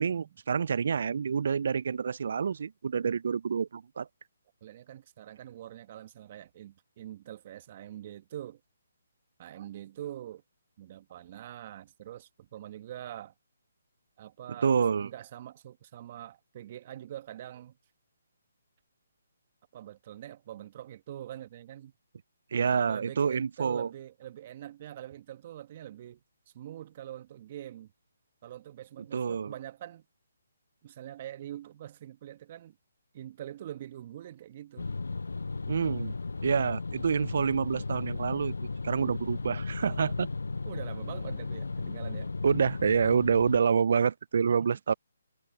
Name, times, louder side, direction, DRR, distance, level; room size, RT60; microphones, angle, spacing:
voice 1, 0.0-4.1 14.6-15.1 22.5-23.9 29.1-29.5 35.7-36.1 36.4-38.5 38.8-40.3 42.4-44.9, right 6 dB, 60° right, 0.4 m, -27 dB
voice 2, 4.6-8.6 9.4-10.4 10.8-13.3 14.2-14.7 15.0-17.7 19.7-21.9 22.6-26.2 26.5-27.9 28.4-30.0 30.8-32.7 33.1-34.9 40.6-42.3 44.6-44.8, right 12 dB, 40° right, 1.5 m, -44 dB
sound 1, 34.8-43.6, left 3 dB, 80° left, 0.4 m, -35 dB
figure-of-eight pair, 145°, 0 cm